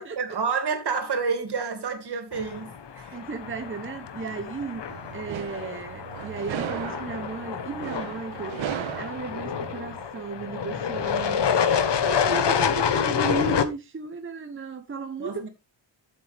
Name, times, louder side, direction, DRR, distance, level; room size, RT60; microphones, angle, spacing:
voice 1, 0.0-3.2 15.2-15.5, right 5 dB, 55° right, 2.6 m, -29 dB
sound 1, 2.3-13.6, left 7 dB, 65° left, 1.2 m, -28 dB
voice 2, 3.1-4.8 5.1-15.5, right 4 dB, 25° right, 0.9 m, -35 dB
sound 2, 4.9-10.1, right 12 dB, 90° right, 0.7 m, -37 dB
12.5 x 7.6 x 3.5 m
wide cardioid pair, 175°, 46 cm